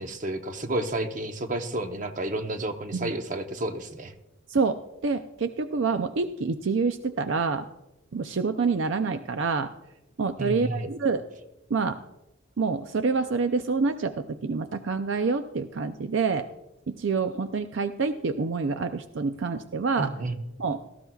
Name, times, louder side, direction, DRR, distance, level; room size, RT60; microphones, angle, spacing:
voice 1, 0.0-4.1 10.4-10.9 20.0-20.4, right 1 dB, 40° right, 6 dB, 0.9 m, -31 dB
voice 2, 4.5-7.7 8.1-9.7 10.2-11.2 11.7-12.0 12.6-16.5 16.9-20.1 20.6-20.8, right 4 dB, 65° right, 9 dB, 0.5 m, -27 dB
18.0 x 14.0 x 2.3 m, 0.94 s
head